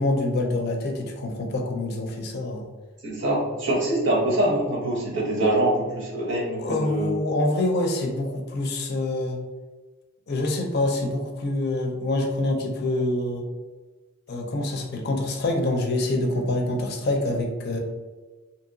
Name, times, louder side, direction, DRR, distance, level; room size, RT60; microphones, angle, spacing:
voice 1, 0.0-2.7 6.6-9.4 10.3-13.4 14.3-17.8, left 2 dB, 50° left, 2 dB, 0.5 m, -26 dB
voice 2, 3.0-7.1, right 1 dB, 60° right, -1 dB, 0.8 m, -24 dB
2.8 x 2.8 x 2.6 m, 1.3 s
head